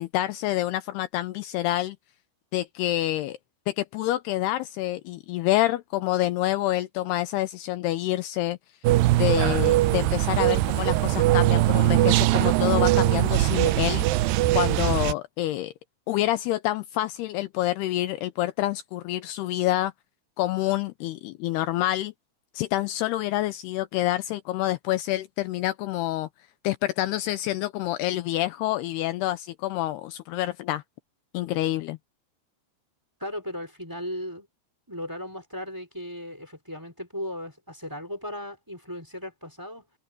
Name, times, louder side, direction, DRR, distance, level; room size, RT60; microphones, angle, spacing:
voice 1, 0.0-2.0 2.5-3.4 3.7-8.6 9.2-14.1 14.5-15.7 16.1-19.9 20.4-22.1 22.5-26.3 26.6-30.8 31.3-32.0, left 15 dB, 80° left, 2.6 m, -27 dB
sound 1, 8.8-15.1, right 16 dB, 90° right, 2.0 m, -21 dB
voice 2, 33.2-34.5 34.9-39.8, equal, 5° right, 4.7 m, -36 dB
omnidirectional pair, 4.9 m